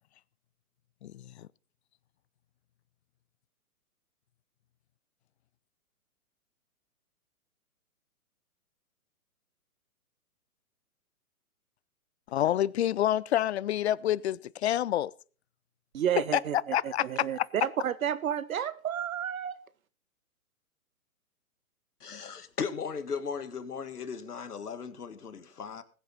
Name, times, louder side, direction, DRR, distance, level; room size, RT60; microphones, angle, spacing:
voice 1, 1.0-1.5 12.3-15.1 16.3-17.5, left 12 dB, 45° left, 0.5 m, -28 dB
voice 2, 15.9-19.6, right 9 dB, 65° right, 1.4 m, -31 dB
voice 3, 22.0-25.8, left 6 dB, 85° left, 1.8 m, -37 dB
20.5 x 8.1 x 4.2 m
hypercardioid pair, 135°, 45 cm